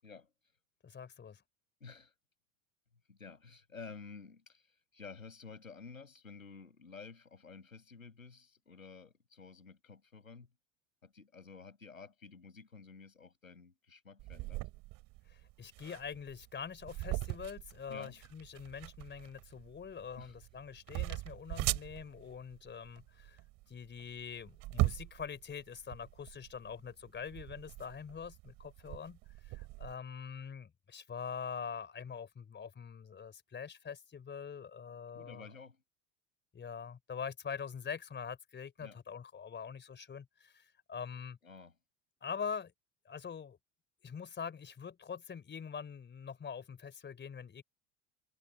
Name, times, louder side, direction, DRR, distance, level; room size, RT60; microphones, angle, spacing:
voice 1, 0.8-1.4 15.3-23.4 23.7-29.2 29.4-35.5 36.5-41.4 42.2-42.7 43.1-43.6 44.0-47.6, left 6 dB, 25° left, 4.0 m, -44 dB
voice 2, 1.8-2.1 3.1-10.5 11.0-14.6 17.9-18.2 20.2-20.4 35.1-35.8 38.8-39.0 41.4-41.8, left 4 dB, 85° left, 7.4 m, -52 dB
sound 1, 14.2-29.9, right 21 dB, 50° right, 3.4 m, -40 dB
figure-of-eight pair, 70°, 40 cm